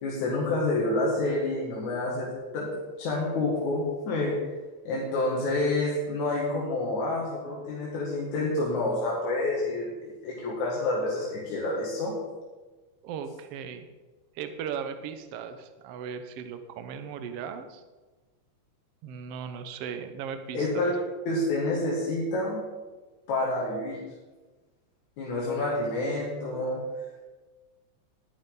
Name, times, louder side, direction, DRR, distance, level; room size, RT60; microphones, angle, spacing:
voice 1, 0.0-4.4 4.8-12.2 20.5-20.9 21.3-22.6 23.3-24.0 25.2-26.8, left 2 dB, 80° left, -5 dB, 3.2 m, -28 dB
voice 2, 13.0-13.9 14.3-17.8 19.0-20.9, right 7 dB, 70° right, 9 dB, 1.6 m, -37 dB
11.0 x 11.0 x 4.0 m, 1.3 s
omnidirectional pair, 3.3 m